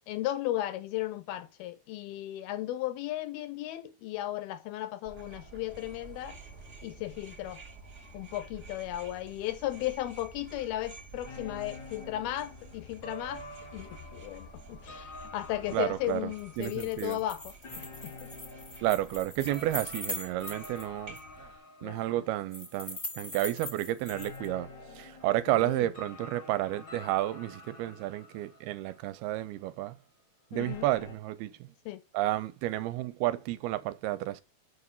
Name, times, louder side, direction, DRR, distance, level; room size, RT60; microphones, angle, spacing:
voice 1, 0.1-6.4 6.8-7.6 8.1-13.4 13.7-18.3 21.8-22.2 25.5-25.9 30.5-30.9 31.9-32.0, left 14 dB, 80° left, 2.5 m, -35 dB
sound 1, 5.0-21.6, right 2 dB, 35° right, 1.2 m, -50 dB
sound 2, 11.2-23.0 23.3-23.6 24.1-29.5 29.9-30.0 30.5-31.1, left 2 dB, 50° left, 1.4 m, -49 dB
voice 2, 15.7-16.3 16.6-17.2 18.8-21.2 21.8-24.7 25.0-29.9 30.5-31.5 32.1-34.4, right 15 dB, 80° right, 2.6 m, -31 dB
sound 3, 16.4-20.9 21.2-21.3 22.5-24.5, left 1 dB, 20° left, 1.1 m, -41 dB
7.2 x 6.2 x 7.2 m
omnidirectional pair, 4.6 m